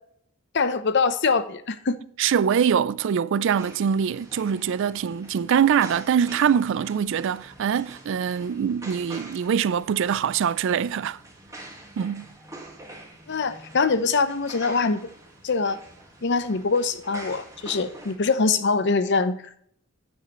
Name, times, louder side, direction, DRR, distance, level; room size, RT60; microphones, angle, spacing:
voice 1, 0.5-2.0 13.3-15.1 15.4-15.8 16.2-19.6, left 4 dB, 60° left, 0.7 m, -23 dB
voice 2, 2.2-11.2 12.0-12.3, right 7 dB, 65° right, 0.3 m, -23 dB
sound 1, 3.5-18.1, right 1 dB, 15° right, 1.8 m, -45 dB
9.7 x 7.4 x 3.0 m
head